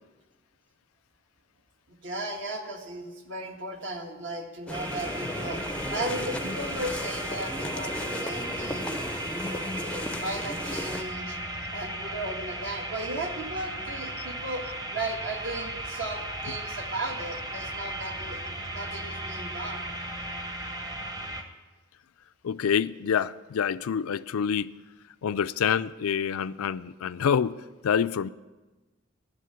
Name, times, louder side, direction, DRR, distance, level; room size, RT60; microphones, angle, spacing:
voice 1, 2.0-5.6 5.9-9.0 9.3-11.4 11.7-19.8, right 1 dB, 60° right, 1.6 m, -36 dB
sound 1, 4.7-11.0, left 1 dB, 5° left, 0.5 m, -35 dB
sound 2, 4.7-21.4, right 1 dB, 20° right, 0.9 m, -36 dB
voice 2, 22.4-24.8 25.2-27.6 27.8-28.3, left 7 dB, 90° left, 0.4 m, -27 dB
11.0 x 6.5 x 9.2 m
head